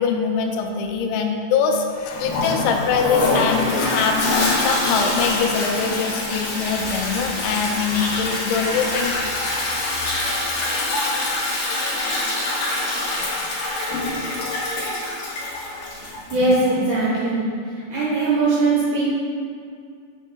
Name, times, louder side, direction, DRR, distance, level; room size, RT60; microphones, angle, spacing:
voice 1, 0.0-4.3 4.6-9.6 9.9-10.1, left 5 dB, 85° left, 3 dB, 2.8 m, -23 dB
Toilet flush, 2.1-16.7, left 2 dB, 65° left, 2.3 m, -24 dB
voice 2, 16.0-17.5 17.9-19.0, right 3 dB, 75° right, -7 dB, 2.5 m, -20 dB
7.2 x 7.1 x 2.2 m, 2.2 s
omnidirectional pair, 5.4 m